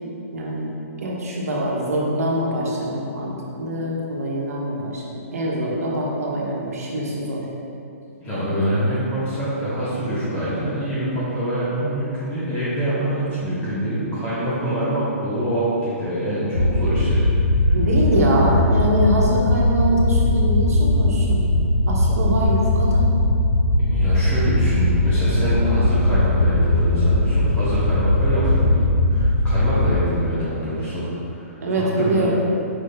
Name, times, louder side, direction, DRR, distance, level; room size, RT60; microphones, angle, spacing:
voice 1, 0.3-7.5 17.7-21.5 21.9-23.1 31.6-32.3, right 1 dB, 80° right, -3 dB, 1.0 m, -24 dB
voice 2, 8.2-17.2 17.6-17.7 23.9-32.3, right 1 dB, 20° left, -11 dB, 0.9 m, -25 dB
sound 1, 16.5-30.0, left 1 dB, 80° left, 0.7 m, -19 dB
4.9 x 4.2 x 2.6 m, 2.7 s
hypercardioid pair, 160°, 8 cm